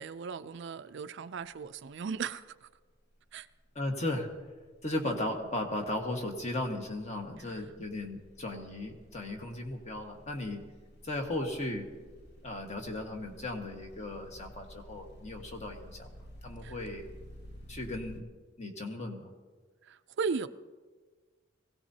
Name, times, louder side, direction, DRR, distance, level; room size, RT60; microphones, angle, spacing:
voice 1, 0.0-2.7 3.3-3.5 7.5-7.6 16.6-16.7 19.8-20.5, right 5 dB, 65° right, 0.4 m, -37 dB
sound 1, 1.5-1.8 2.1-18.2, equal, 55° left, 1.7 m, -53 dB
voice 2, 3.7-4.3 4.8-10.6 11.0-11.9 12.4-16.1 16.4-17.1 17.7-18.2 18.6-19.3, left 1 dB, 35° left, 1.6 m, -36 dB
22.5 x 16.5 x 2.8 m
head